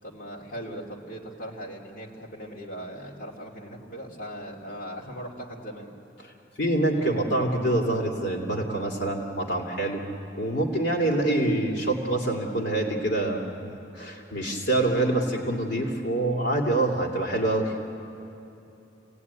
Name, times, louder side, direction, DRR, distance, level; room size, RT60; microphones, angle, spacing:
voice 1, 0.0-5.9 6.9-7.3, equal, 45° left, -3 dB, 2.8 m, -39 dB
voice 2, 6.6-10.0 10.4-17.7, right 2 dB, 65° left, 0 dB, 2.6 m, -26 dB
29.0 x 18.0 x 9.6 m, 2.8 s
head